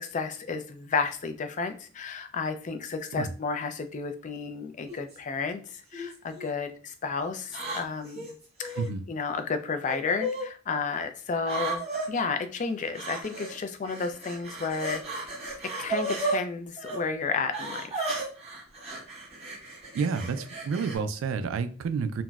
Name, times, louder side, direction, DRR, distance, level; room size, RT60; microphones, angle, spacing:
voice 1, 0.0-8.3 8.6-8.8 9.1-15.0 15.8-18.2, left 4 dB, 40° left, 0.3 m, -32 dB
sound 1, 4.9-5.2 5.9-6.5 7.5-8.9 9.9-10.5 11.4-12.1 12.9-13.6 13.8-16.4 16.8-17.0 17.5-21.0, right 2 dB, 30° right, 1.1 m, -34 dB
voice 2, 19.9-22.2, right 5 dB, 70° right, 0.3 m, -30 dB
3.9 x 2.1 x 2.3 m
head